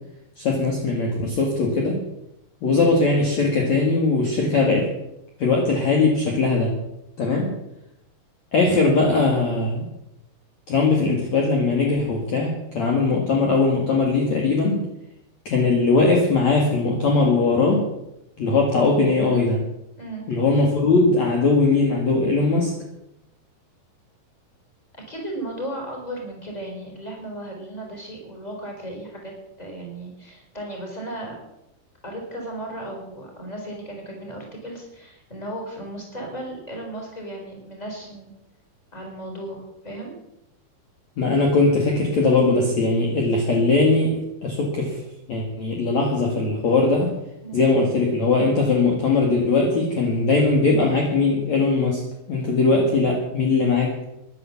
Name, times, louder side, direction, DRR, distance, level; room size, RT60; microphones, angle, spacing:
voice 1, 0.4-2.0 2.6-4.9 5.4-6.8 7.2-7.5 8.5-9.9 10.7-14.8 15.4-17.8 18.4-19.6 20.3-22.7 41.2-45.0 45.3-47.1 47.5-52.0 52.3-54.0, left 3 dB, 50° left, 0 dB, 3.1 m, -20 dB
voice 2, 25.1-29.3 29.6-31.4 32.0-38.3 38.9-40.1 47.4-47.6, right 1 dB, 10° left, 0 dB, 4.3 m, -35 dB
14.0 x 11.0 x 7.2 m, 0.85 s
omnidirectional pair, 4.6 m